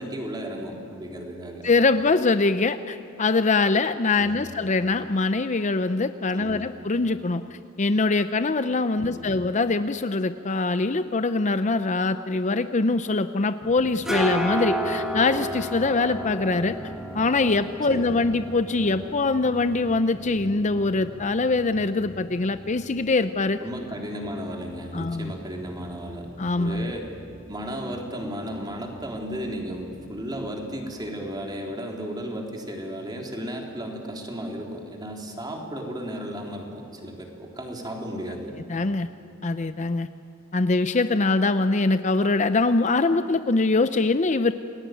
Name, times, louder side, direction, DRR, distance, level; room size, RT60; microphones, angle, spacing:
voice 1, 0.0-1.7 4.2-4.5 6.3-6.7 8.9-9.4 17.9-18.3 23.6-26.3 26.6-27.1 27.5-38.6, equal, 20° right, 1 dB, 3.7 m, -34 dB
voice 2, 1.6-16.8 17.1-23.6 24.9-25.3 26.4-26.9 38.7-39.1 39.4-40.1 40.5-44.5, left 3 dB, 35° left, 10 dB, 0.6 m, -23 dB
sound 1, 13.6-31.1, equal, 5° right, 2.1 m, -35 dB
28.5 x 20.5 x 9.4 m, 2.6 s
head